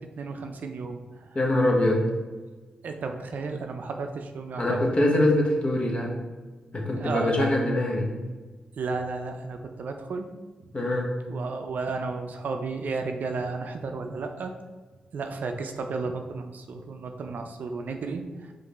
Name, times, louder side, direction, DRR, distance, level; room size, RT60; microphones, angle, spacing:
voice 1, 0.2-1.4 2.8-4.8 7.0-7.5 8.8-10.3 11.3-14.5 15.1-18.5, right 4 dB, 65° right, 5 dB, 0.4 m, -33 dB
voice 2, 1.3-2.1 4.6-6.2 6.7-8.1 10.7-11.1, left 1 dB, 40° left, -1 dB, 1.1 m, -23 dB
5.0 x 2.6 x 3.1 m, 1.3 s
supercardioid pair, 40°, 3 cm